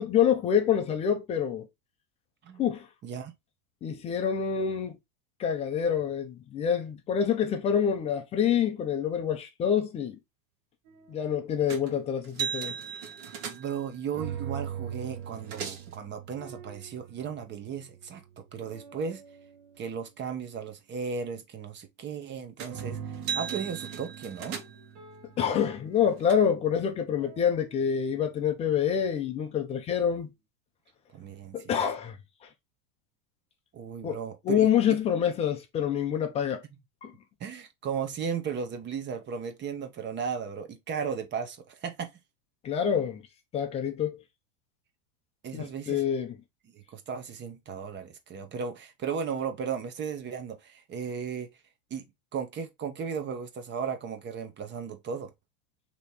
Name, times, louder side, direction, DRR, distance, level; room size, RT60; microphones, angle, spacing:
voice 1, 0.0-1.7 2.6-2.9 3.8-5.0 5.4-10.2 11.1-12.7 25.4-30.3 31.5-32.2 34.0-34.2 34.4-36.6 37.0-37.1 42.6-43.2 43.5-44.2 45.5-46.4, left 8 dB, 15° left, 0.3 m, -27 dB
sound 1, 10.9-11.5 14.1-20.0 22.7-28.3, right 8 dB, 75° right, 1.4 m, -43 dB
sound 2, 11.7-12.0 12.2-13.9 14.9-15.0 15.2-16.0 22.6-22.9 23.1-24.9 25.7-26.3, right 7 dB, 55° right, 1.3 m, -37 dB
voice 2, 13.5-19.2 19.8-23.0 23.3-24.6 31.1-31.6 33.7-34.7 37.4-42.1 45.4-46.0 46.7-51.5 51.9-52.0 52.3-55.3, right 6 dB, 25° right, 0.8 m, -35 dB
3.4 x 3.0 x 4.1 m
supercardioid pair, 125°, 46 cm